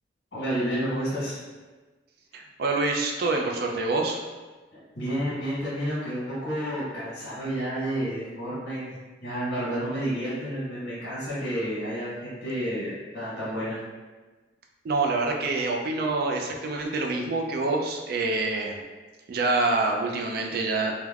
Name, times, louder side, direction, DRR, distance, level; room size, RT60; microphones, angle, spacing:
voice 1, 0.3-1.4 4.7-8.8 9.2-13.8, equal, 60° left, -10 dB, 1.3 m, -30 dB
voice 2, 2.3-4.2 14.8-18.8 19.3-20.9, right 3 dB, 55° right, 2 dB, 0.4 m, -26 dB
3.2 x 2.1 x 2.3 m, 1.3 s
head